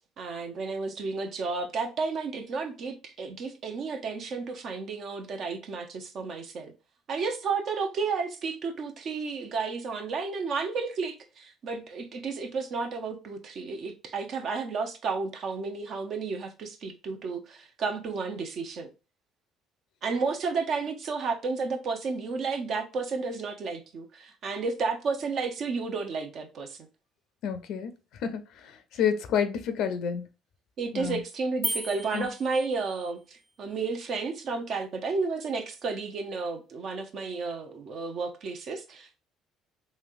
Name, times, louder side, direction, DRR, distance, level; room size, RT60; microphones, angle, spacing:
voice 1, 0.2-6.7 7.1-18.9 20.0-26.9 30.8-39.2, right 4 dB, 60° right, 0.7 m, -32 dB
voice 2, 27.4-27.9 28.2-28.4 29.0-30.2 30.9-31.2 32.1-32.3, left 7 dB, 70° left, 0.5 m, -28 dB
sound 1, 31.6-33.2, equal, 5° right, 0.3 m, -35 dB
3.2 x 2.7 x 2.4 m
supercardioid pair, 70°, 0 cm